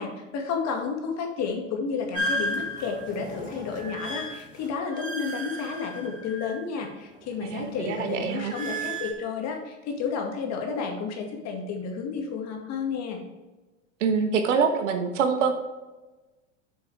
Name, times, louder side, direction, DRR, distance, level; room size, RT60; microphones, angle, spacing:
voice 1, 0.0-13.2, left 5 dB, 45° left, 2 dB, 2.1 m, -31 dB
sound 1, 2.1-6.9 7.2-9.1, equal, 20° right, 2.6 m, -34 dB
voice 2, 7.4-8.5 14.0-15.5, right 6 dB, 70° right, 6 dB, 1.3 m, -25 dB
8.1 x 6.2 x 3.4 m, 1.1 s
hypercardioid pair, 85°, 38 cm